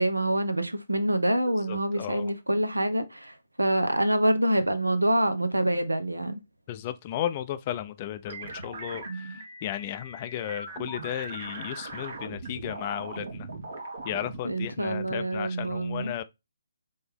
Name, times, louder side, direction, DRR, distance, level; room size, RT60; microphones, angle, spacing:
voice 1, 0.0-6.4 9.1-9.4 14.4-16.1, right 1 dB, 85° right, 0.8 m, -26 dB
voice 2, 1.7-2.3 6.7-9.0 9.6-13.5 14.0-16.2, left 11 dB, 30° left, 0.4 m, -34 dB
sound 1, 8.3-14.4, right 3 dB, 50° right, 1.2 m, -40 dB
4.3 x 3.4 x 3.5 m
figure-of-eight pair, 140°, 0 cm